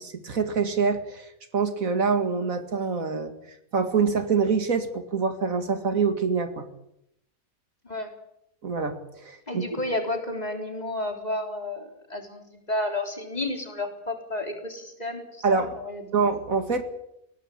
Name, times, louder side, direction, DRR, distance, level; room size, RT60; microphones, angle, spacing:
voice 1, 0.0-3.3 3.7-6.7 8.6-9.6 15.4-15.7 16.1-16.8, right 5 dB, 70° right, 8 dB, 2.4 m, -25 dB
voice 2, 9.5-16.2, left 1 dB, 30° left, 4 dB, 3.8 m, -32 dB
21.0 x 17.5 x 8.8 m, 0.79 s
omnidirectional pair, 1.5 m